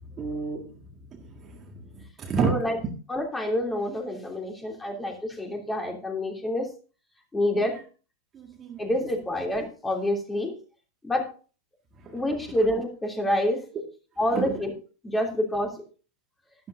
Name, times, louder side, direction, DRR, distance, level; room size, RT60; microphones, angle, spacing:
voice 1, 0.0-0.8 1.1-2.6 8.3-8.9 12.0-12.2 14.3-14.6, right 5 dB, 25° right, 1.8 m, -31 dB
voice 2, 2.4-2.8 3.1-6.7 7.3-7.8 8.8-10.5 11.0-11.3 12.1-13.6 14.2-14.7 15.0-15.7, left 1 dB, 10° left, 3.0 m, -27 dB
12.5 x 11.5 x 2.6 m
figure-of-eight pair, 90°, 0 cm